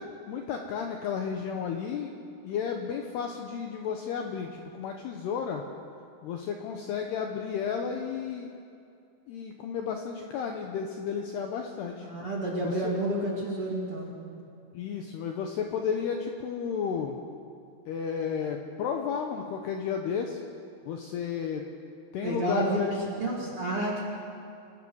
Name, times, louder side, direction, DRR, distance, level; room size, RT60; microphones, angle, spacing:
voice 1, 0.0-2.1 2.4-5.6 6.2-8.5 9.3-12.1 12.6-12.9 14.7-17.2 17.9-20.4 20.9-21.6 22.1-23.2, left 7 dB, 75° left, 3 dB, 2.5 m, -33 dB
voice 2, 12.0-14.1 22.2-24.0, right 1 dB, 35° right, -4 dB, 2.5 m, -30 dB
28.0 x 16.5 x 6.3 m, 2.5 s
omnidirectional pair, 5.9 m